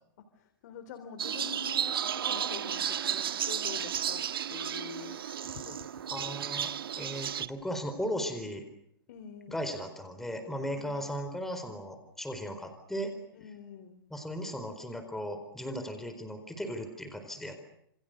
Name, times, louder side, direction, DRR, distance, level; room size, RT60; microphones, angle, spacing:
voice 1, 0.3-4.2 4.5-5.9 6.2-6.4 9.1-9.6 10.6-11.1 13.3-14.0, left 8 dB, 50° left, 9 dB, 3.6 m, -46 dB
sound 1, 1.2-7.5, right 9 dB, 90° right, 1.6 m, -33 dB
voice 2, 6.1-8.7 9.5-13.1 14.1-17.6, equal, 5° left, 7 dB, 4.3 m, -37 dB
28.0 x 27.0 x 6.7 m, 0.72 s
hypercardioid pair, 155°, 12 cm